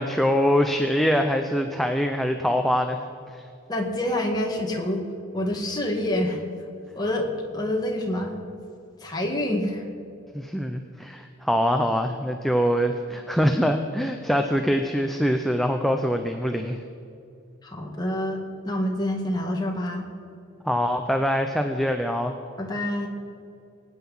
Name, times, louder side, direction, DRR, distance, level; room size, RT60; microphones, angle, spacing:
voice 1, 0.0-3.0 3.3-3.4 10.3-16.8 20.6-22.3, equal, ahead, 5 dB, 0.6 m, -24 dB
voice 2, 3.7-5.0 5.3-6.4 7.0-8.3 9.0-9.8 17.6-20.1 22.6-23.1, left 1 dB, 20° left, 0 dB, 1.9 m, -27 dB
23.5 x 9.4 x 5.6 m, 2.5 s
head